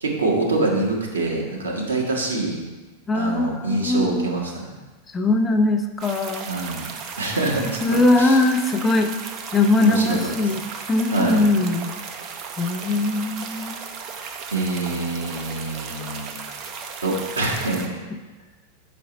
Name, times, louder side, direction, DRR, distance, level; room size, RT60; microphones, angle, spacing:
voice 1, 0.0-2.6 3.1-4.7 6.5-6.8 7.2-8.4 9.8-10.2 11.1-11.4 14.5-16.4 17.0-18.0, right 2 dB, 75° right, -2 dB, 1.5 m, -25 dB
voice 2, 3.1-4.3 5.1-6.5 7.8-9.1 9.5-10.6 10.9-11.9 12.6-13.8, left 2 dB, 15° left, 4 dB, 0.5 m, -21 dB
sound 1, 6.0-17.9, right 6 dB, 35° right, 0.6 m, -35 dB
5.7 x 5.1 x 5.2 m, 1.3 s
figure-of-eight pair, 90°, 0 cm